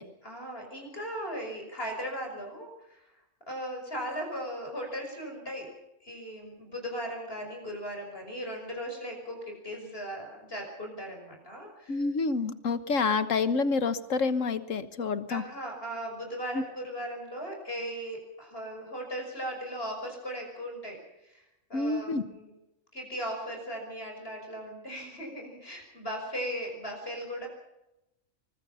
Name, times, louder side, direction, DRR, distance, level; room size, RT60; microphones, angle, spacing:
voice 1, 0.2-3.1 3.5-5.7 6.0-12.0 15.3-22.5 22.9-27.5, equal, 45° left, 2 dB, 6.0 m, -38 dB
voice 2, 11.9-15.4 16.5-16.6 21.7-22.2, left 4 dB, 65° left, 12 dB, 1.7 m, -28 dB
24.5 x 21.5 x 5.7 m, 0.91 s
omnidirectional pair, 1.4 m